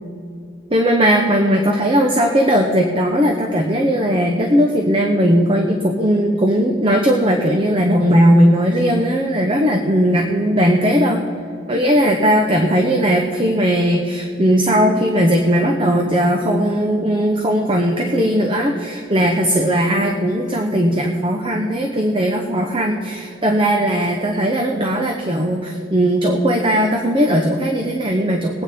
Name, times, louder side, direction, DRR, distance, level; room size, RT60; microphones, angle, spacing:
voice 1, 0.7-11.2 11.7-28.6, equal, 25° right, 2 dB, 0.7 m, -17 dB
20.5 x 8.9 x 3.5 m, 2.6 s
head